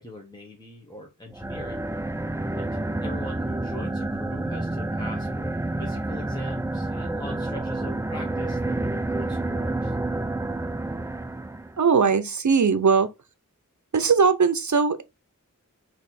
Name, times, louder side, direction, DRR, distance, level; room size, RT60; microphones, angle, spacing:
voice 1, 0.0-1.8 2.6-2.7 3.0-9.9, equal, 15° left, 1.3 m, -41 dB
sound 1, 1.3-11.8, right 2 dB, 10° right, 0.4 m, -29 dB
voice 2, 11.8-13.1 13.9-15.0, right 5 dB, 65° right, 0.7 m, -20 dB
4.1 x 3.1 x 4.1 m
wide cardioid pair, 45°, 32 cm